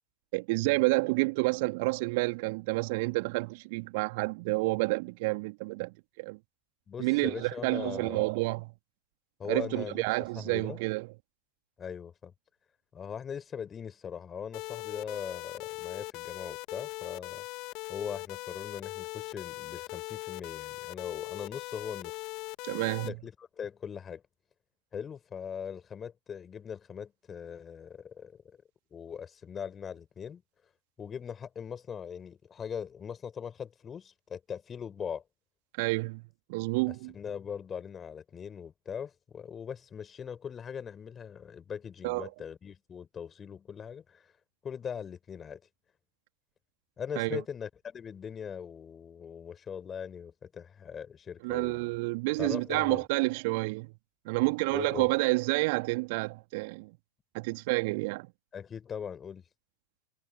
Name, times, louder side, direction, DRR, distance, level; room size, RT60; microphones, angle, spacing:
voice 1, 0.3-6.4 7.0-8.7 9.5-11.1 22.6-23.1 35.8-36.2 36.5-37.1 42.0-42.3 47.2-47.4 51.4-53.9 54.3-56.9 57.3-58.3, right 26 dB, 50° right, 2.3 m, -29 dB
voice 2, 6.9-8.3 9.4-10.0 10.4-10.8 11.8-12.3 12.9-17.5 17.9-22.2 23.1-24.2 24.9-28.6 28.9-30.4 31.0-35.2 37.1-44.3 44.6-45.6 47.0-51.8 52.4-53.0 54.7-55.1 58.5-59.4, left 7 dB, 20° left, 4.2 m, -40 dB
sound 1, 14.5-23.1, left 25 dB, 40° left, 1.9 m, -40 dB
figure-of-eight pair, 90°, 0 cm